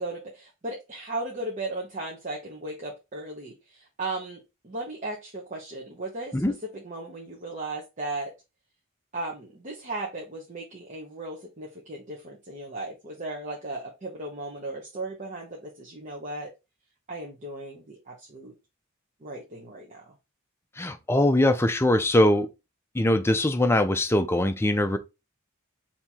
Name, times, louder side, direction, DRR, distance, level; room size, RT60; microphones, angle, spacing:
voice 1, 0.0-6.4 6.6-8.3 9.1-16.5 17.1-18.5 19.2-20.1, right 2 dB, 35° right, 0.8 m, -36 dB
voice 2, 20.8-22.5 22.9-25.0, left 1 dB, 10° left, 0.4 m, -22 dB
4.5 x 2.8 x 3.5 m
head